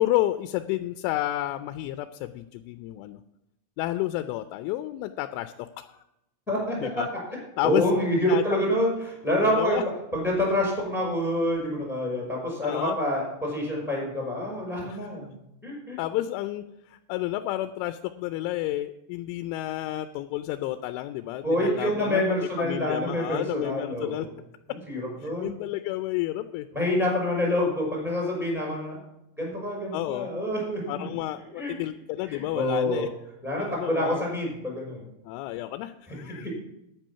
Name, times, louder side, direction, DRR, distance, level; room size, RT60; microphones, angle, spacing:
voice 1, 0.0-3.2 3.8-6.0 6.8-7.1 7.6-7.8 8.3-8.6 9.4-9.8 12.6-13.0 14.8-15.0 16.0-22.2 22.6-24.3 25.2-26.7 29.9-30.3 30.9-33.1 33.6-34.2 35.3-36.5, left 15 dB, 90° left, 10 dB, 3.0 m, -31 dB
voice 2, 7.6-9.8 10.1-15.3 15.6-16.0 21.4-24.3 24.7-25.5 26.7-29.0 29.4-31.1 31.6-31.7 32.3-33.1 33.4-35.0 36.4-36.5, left 1 dB, ahead, -3 dB, 4.7 m, -27 dB
9.9 x 9.0 x 5.7 m, 0.86 s
omnidirectional pair, 5.4 m